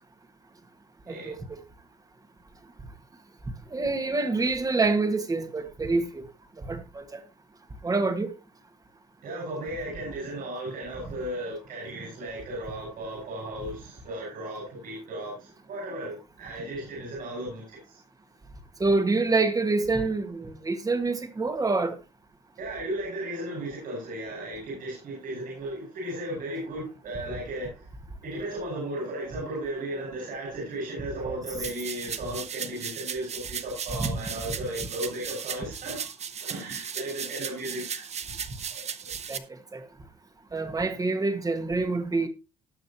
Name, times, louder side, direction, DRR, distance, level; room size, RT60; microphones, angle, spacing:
voice 1, 1.1-1.6 3.7-6.2 6.6-7.2 7.8-8.3 18.8-22.0 31.2-31.4 34.0-34.1 39.3-39.4 39.7-39.9 40.5-42.3, right 3 dB, 20° right, 1.9 m, -26 dB
voice 2, 9.2-18.0 22.6-27.8 28.2-36.1 36.4-38.1 38.7-39.1, right 1 dB, 60° right, 6.8 m, -35 dB
sound 1, 31.6-39.4, right 7 dB, 40° right, 1.1 m, -36 dB
19.0 x 6.5 x 3.0 m
cardioid pair, 110°, 17 cm